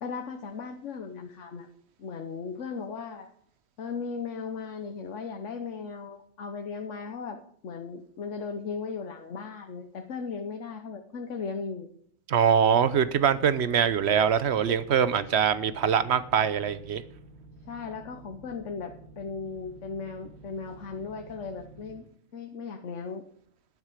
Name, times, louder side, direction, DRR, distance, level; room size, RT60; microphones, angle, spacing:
voice 1, 0.0-1.7 2.0-3.3 3.8-11.9 17.7-22.0 22.3-23.2, left 5 dB, 70° left, 1.3 m, -37 dB
voice 2, 12.3-17.0, right 8 dB, 65° right, 1.0 m, -23 dB
sound 1, 12.7-22.0, right 2 dB, 45° right, 5.5 m, -51 dB
12.0 x 9.7 x 5.0 m
omnidirectional pair, 1.3 m